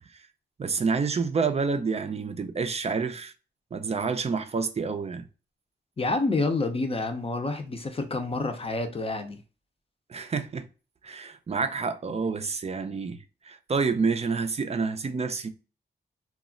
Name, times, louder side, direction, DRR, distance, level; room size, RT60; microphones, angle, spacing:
voice 1, 0.6-3.3 3.7-5.3 10.1-10.7 11.0-15.5, right 5 dB, 35° right, 0.4 m, -28 dB
voice 2, 6.0-9.4, left 3 dB, 30° left, 0.6 m, -28 dB
2.3 x 2.0 x 3.7 m
cardioid pair, 80°, 19 cm